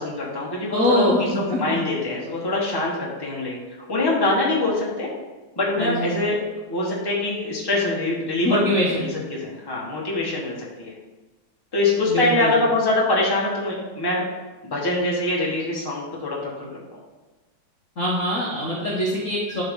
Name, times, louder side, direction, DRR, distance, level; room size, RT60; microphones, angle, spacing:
voice 1, 0.0-3.6 3.9-5.1 5.6-6.4 6.6-10.9 11.7-14.2 14.6-17.0, left 2 dB, 15° left, -4 dB, 1.2 m, -24 dB
voice 2, 0.7-1.2 1.5-1.8 5.8-6.2 8.4-9.1 12.1-12.5 18.0-19.6, left 1 dB, 45° left, -5 dB, 1.2 m, -23 dB
11.5 x 4.1 x 3.7 m, 1.2 s
omnidirectional pair, 2.3 m